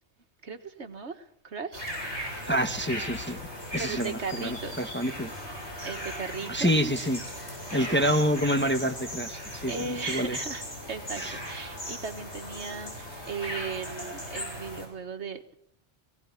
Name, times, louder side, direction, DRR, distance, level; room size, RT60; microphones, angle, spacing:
voice 1, 0.4-1.9 3.8-4.9 5.8-6.7 7.6-7.8 9.7-15.6, right 4 dB, 70° right, 7 dB, 1.9 m, -37 dB
sound 1, 1.7-14.9, equal, 70° left, 7.6 m, -38 dB
voice 2, 2.5-3.4 3.7-5.3 6.5-9.7 10.1-10.4 11.2-11.3, equal, 10° left, 7 dB, 1.0 m, -27 dB
20.5 x 17.5 x 8.3 m, 0.70 s
omnidirectional pair, 1.2 m